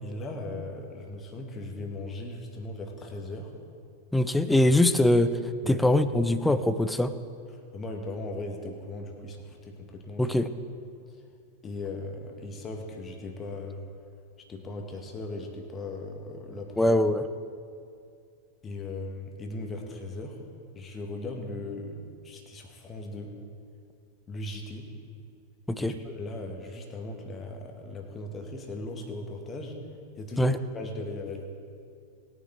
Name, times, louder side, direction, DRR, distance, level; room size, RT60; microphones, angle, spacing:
voice 1, 0.0-3.5 5.6-5.8 7.5-10.3 11.6-13.9 14.5-16.8 18.6-20.4 20.8-23.4 24.3-24.9 25.8-29.8 30.2-31.5, left 2 dB, 20° left, 2 dB, 1.8 m, -38 dB
voice 2, 4.1-5.4 5.7-7.1 10.2-10.5 16.8-17.3 25.7-26.0 30.4-30.6, left 1 dB, 5° left, 12 dB, 0.6 m, -22 dB
20.0 x 9.3 x 3.6 m, 2.4 s
figure-of-eight pair, 90°, 0 cm